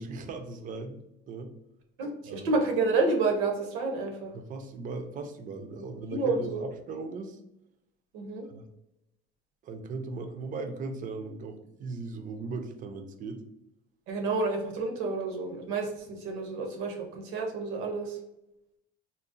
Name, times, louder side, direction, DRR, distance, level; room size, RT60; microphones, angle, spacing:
voice 1, 0.0-1.5 2.3-2.5 4.3-7.4 8.5-8.7 9.6-13.4, right 3 dB, 40° right, 7 dB, 0.4 m, -38 dB
voice 2, 2.0-4.3 5.7-6.6 8.1-8.5 14.1-18.2, right 3 dB, 75° right, 3 dB, 0.7 m, -29 dB
3.8 x 2.0 x 2.5 m, 0.89 s
cardioid pair, 115°, 21 cm